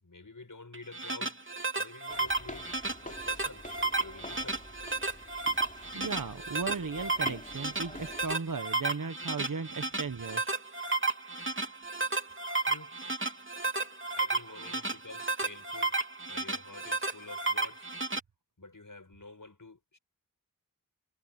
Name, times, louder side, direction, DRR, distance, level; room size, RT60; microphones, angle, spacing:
voice 1, 0.0-1.3 1.8-2.7 3.0-4.6 12.7-12.9 14.2-16.0 16.3-17.9 18.6-20.0, left 3 dB, 65° left, 5.6 m, -49 dB
sound 1, 0.7-18.2, right 3 dB, 35° right, 2.8 m, -33 dB
sound 2, 2.1-8.4, left 1 dB, 25° left, 2.8 m, -47 dB
voice 2, 5.9-10.6 14.6-14.8, right 4 dB, 65° right, 1.1 m, -36 dB
wide cardioid pair, 45°, 34 cm